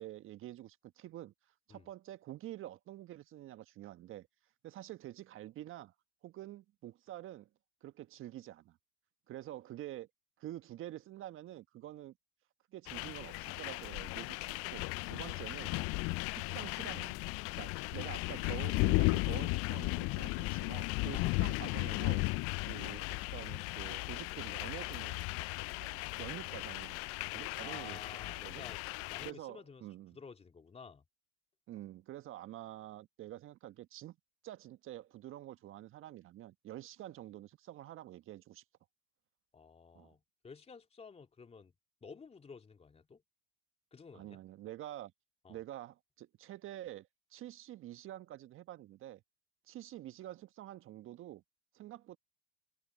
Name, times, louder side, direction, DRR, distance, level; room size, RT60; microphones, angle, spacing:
voice 1, 0.0-1.3 1.7-4.3 4.6-5.9 6.2-7.5 7.8-8.8 9.3-10.1 10.4-12.1 12.7-15.8 16.3-17.2 17.6-22.2 22.7-25.3 25.8-27.0 27.3-28.0 28.3-28.6 29.2-30.2 31.7-34.2 34.4-38.6 39.9-40.1 44.1-45.1 45.5-49.2 49.6-51.4 51.7-52.2, right 14 dB, 40° right, 1.5 m, -47 dB
sound 1, 12.9-29.3, left 26 dB, 45° left, 0.6 m, -36 dB
voice 2, 27.6-29.8 30.1-31.0 39.5-41.7 42.0-43.2 43.9-44.4 45.4-45.6, left 5 dB, 20° left, 2.7 m, -52 dB
hypercardioid pair, 90°, 32 cm